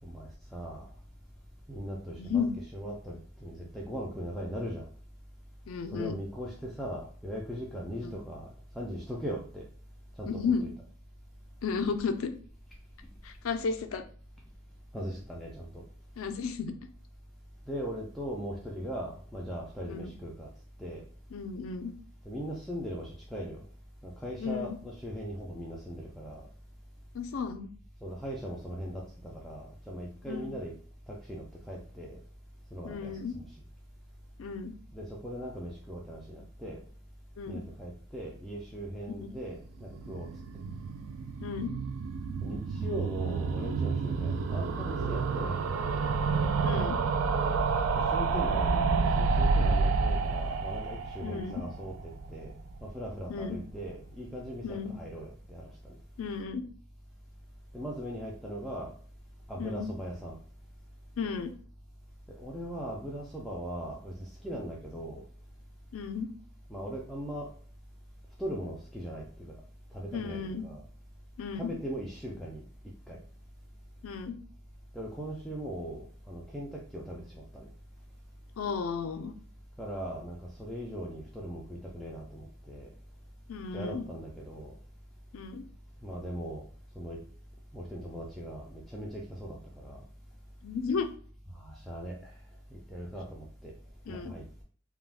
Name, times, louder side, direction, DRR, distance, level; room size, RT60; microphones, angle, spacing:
voice 1, 0.0-0.9 1.7-2.5 2.7-4.9 5.9-8.5 8.7-9.7 10.2-10.7 14.9-15.8 17.7-20.5 20.8-21.0 22.2-23.6 24.0-26.5 28.0-30.7 31.1-32.2 32.7-33.5 34.9-36.8 37.5-40.3 42.4-45.7 48.0-52.5 52.8-55.9 57.7-58.9 59.5-60.4 62.3-65.2 66.7-67.5 68.4-69.5 69.9-70.8 71.6-72.6 73.1-73.2 74.9-77.7 79.8-82.9 83.7-84.7 86.0-86.6 87.0-87.2 87.7-90.0 91.5-92.3 92.7-93.7 94.1-94.6, equal, ahead, -4 dB, 0.4 m, -39 dB
voice 2, 2.2-2.5 5.7-6.2 8.0-8.1 10.3-10.7 11.6-12.3 13.2-14.0 16.2-16.8 19.9-20.1 21.3-21.9 24.4-24.8 27.1-27.7 30.3-30.5 32.8-33.3 34.4-34.7 37.4-37.6 39.2-39.3 41.4-41.7 46.6-47.0 51.2-51.6 53.3-53.6 54.6-54.9 56.2-56.6 59.6-59.9 61.2-61.5 65.9-66.3 70.1-70.6 71.4-71.7 74.0-74.4 78.6-79.3 83.5-84.1 85.3-85.6 90.6-91.1 94.1-94.3, left 5 dB, 75° left, 8 dB, 0.4 m, -33 dB
sound 1, 39.8-52.9 53.2-53.3 53.5-53.6 53.8-53.9, right 4 dB, 75° right, 0.3 m, -29 dB
2.4 x 2.2 x 3.3 m, 0.42 s
head